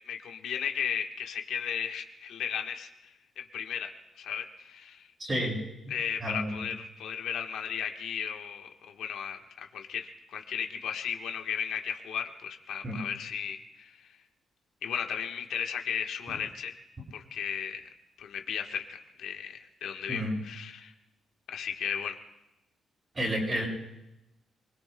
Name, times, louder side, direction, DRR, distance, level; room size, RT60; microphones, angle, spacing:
voice 1, 0.0-3.9 4.2-5.1 5.9-14.1 14.8-16.7 17.1-17.9 18.2-20.9 21.5-22.2, left 8 dB, 85° left, 3 dB, 1.3 m, -35 dB
voice 2, 5.2-5.6 6.2-6.6 12.8-13.0 20.1-20.4 23.1-23.7, equal, 25° right, -4 dB, 6.2 m, -30 dB
28.5 x 21.0 x 2.3 m, 0.93 s
cardioid pair, 145°, 0 cm